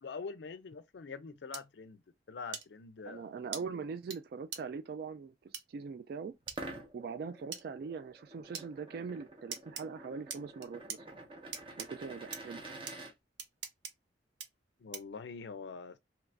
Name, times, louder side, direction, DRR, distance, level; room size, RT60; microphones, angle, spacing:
voice 1, 0.0-2.0 2.3-3.3 14.8-16.0, left 5 dB, 75° left, 0.4 m, -44 dB
sound 1, 1.5-1.6 2.5-2.6 3.5-3.6 4.1-4.2 4.5-4.6 5.5-5.6 6.5-6.6 7.5-7.6 8.5-8.7 9.5-9.8 10.3-11.0 11.5-11.9 12.3-12.4 12.9-13.0 13.4-13.9 14.4-14.5 14.9-15.2, right 7 dB, 85° right, 0.7 m, -41 dB
voice 2, 3.0-6.4 6.9-11.1 11.8-12.6, right 5 dB, 60° right, 0.3 m, -42 dB
sound 2, 6.4-13.1, right 2 dB, 30° right, 0.7 m, -48 dB
2.9 x 2.5 x 3.3 m
head